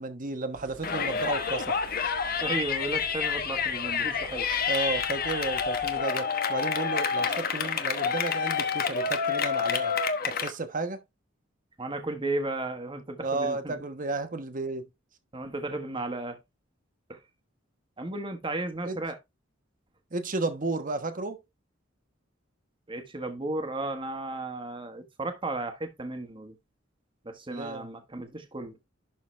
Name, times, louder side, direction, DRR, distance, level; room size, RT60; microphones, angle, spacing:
voice 1, 0.0-1.8 4.7-10.0 10.3-11.0 13.2-14.8 18.8-19.0 20.1-21.4 27.5-27.9, right 3 dB, 45° right, 1.2 m, -32 dB
sound 1, 0.5-6.0, right 4 dB, 90° right, 1.1 m, -50 dB
Yell, 0.8-10.5, left 6 dB, 50° left, 1.0 m, -28 dB
voice 2, 2.4-4.5 11.8-13.7 15.3-16.4 17.1-17.2 18.0-19.2 22.9-26.5 27.2-28.8, right 2 dB, 25° right, 1.4 m, -34 dB
11.5 x 4.0 x 3.2 m
head